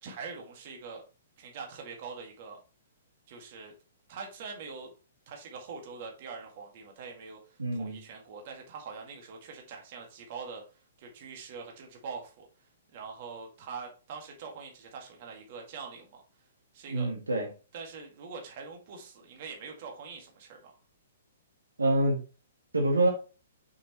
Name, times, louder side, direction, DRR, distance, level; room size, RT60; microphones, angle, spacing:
voice 1, 0.0-1.0 1.4-2.6 3.3-3.7 4.1-4.9 5.3-10.6 11.0-16.2 16.7-17.1 17.7-20.8, right 5 dB, 45° right, 1 dB, 2.1 m, -43 dB
voice 2, 7.6-8.0 16.9-17.5 21.8-22.2 22.7-23.1, right 2 dB, 75° right, 1 dB, 1.7 m, -26 dB
6.5 x 5.7 x 3.2 m, 0.34 s
figure-of-eight pair, 115°, 0 cm